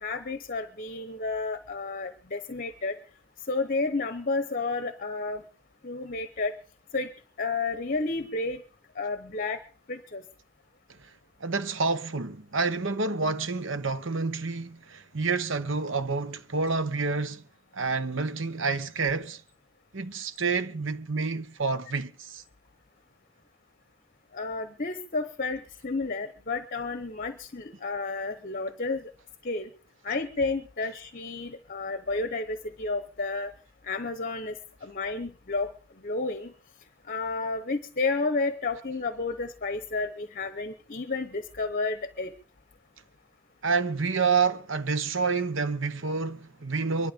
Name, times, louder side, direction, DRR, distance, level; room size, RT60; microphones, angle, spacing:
voice 1, 0.0-3.0 3.5-5.4 5.8-6.5 6.9-7.1 7.4-8.6 9.0-9.6 9.9-10.2 24.3-29.1 29.4-29.7 30.0-33.5 33.8-34.6 34.8-35.7 36.0-36.5 37.1-42.3, left 3 dB, 40° left, 0.9 m, -31 dB
voice 2, 11.4-17.4 17.7-19.4 19.9-22.4 43.6-47.1, right 4 dB, 65° right, 1.1 m, -28 dB
23.0 x 12.0 x 5.2 m
head